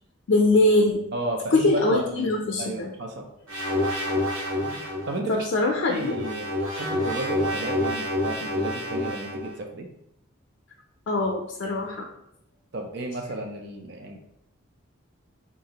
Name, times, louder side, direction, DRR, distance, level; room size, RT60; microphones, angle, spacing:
voice 1, 0.3-1.0 1.5-2.9 5.3-6.1 11.1-12.1, left 2 dB, 65° left, 0 dB, 0.4 m, -22 dB
voice 2, 1.1-2.3 2.6-3.3 4.6-5.4 5.9-6.5 6.7-9.9 12.7-14.2, right 2 dB, 55° right, 2 dB, 0.4 m, -33 dB
sound 1, 3.5-5.1 5.8-9.5, left 1 dB, 80° right, 1.0 m, -28 dB
3.9 x 2.5 x 2.8 m, 0.78 s
head